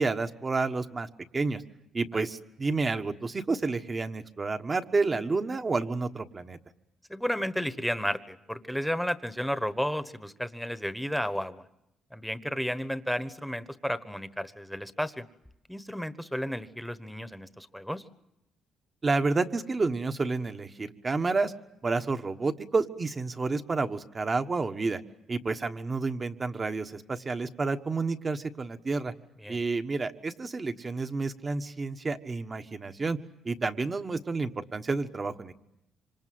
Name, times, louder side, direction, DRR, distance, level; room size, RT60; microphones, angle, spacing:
voice 1, 0.0-1.6 1.9-6.6 19.0-21.5 21.8-25.0 25.3-29.1 29.5-33.2 33.4-35.5, right 3 dB, 30° right, 8 dB, 1.4 m, -30 dB
voice 2, 7.1-11.6 12.1-15.2 15.7-18.0 29.4-29.6, equal, ahead, 12 dB, 1.3 m, -32 dB
26.5 x 25.5 x 7.8 m, 0.83 s
cardioid pair, 90°, 0 cm